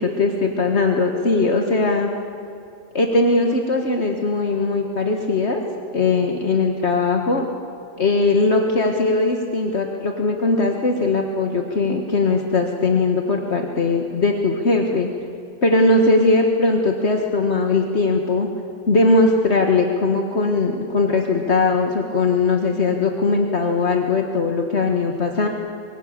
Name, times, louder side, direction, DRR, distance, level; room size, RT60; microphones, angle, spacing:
voice 1, 0.0-2.1 2.9-5.6 5.9-7.4 8.0-15.1 15.6-18.5 18.9-25.5, left 3 dB, 60° left, 3 dB, 1.9 m, -19 dB
25.0 x 23.5 x 7.0 m, 2.6 s
omnidirectional pair, 1.3 m